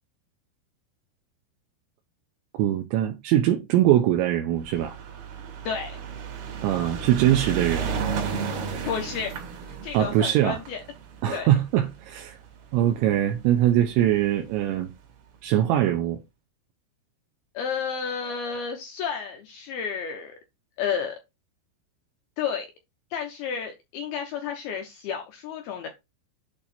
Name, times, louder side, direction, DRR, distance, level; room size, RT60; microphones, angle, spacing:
voice 1, 2.5-5.0 6.6-7.9 9.9-10.6 11.2-12.4 12.7-14.9 15.4-16.2, right 12 dB, 80° right, 2.9 m, -22 dB
sound 1, 4.6-13.1 13.9-14.0 14.2-14.3 14.5-14.6, right 6 dB, 60° right, 3.4 m, -33 dB
voice 2, 5.6-6.0 8.9-9.3 9.7-10.8 11.3-11.5 17.5-20.4 20.8-21.2 22.4-22.7 23.1-25.9, left 7 dB, 85° left, 2.2 m, -31 dB
8.6 x 2.9 x 4.2 m
omnidirectional pair, 5.5 m